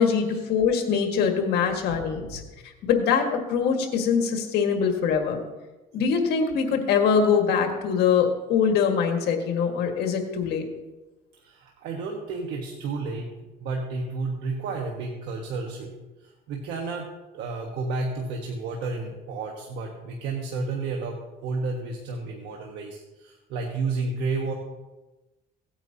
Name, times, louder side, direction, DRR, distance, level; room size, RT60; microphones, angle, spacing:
voice 1, 0.0-2.4 2.8-5.4 5.9-10.6, left 6 dB, 75° left, 4 dB, 1.7 m, -23 dB
voice 2, 11.4-13.3 13.6-15.9 16.2-17.1 17.3-24.5, right 3 dB, 85° right, 0 dB, 1.3 m, -31 dB
17.0 x 8.9 x 2.8 m, 1.1 s
cardioid pair, 110°, 17 cm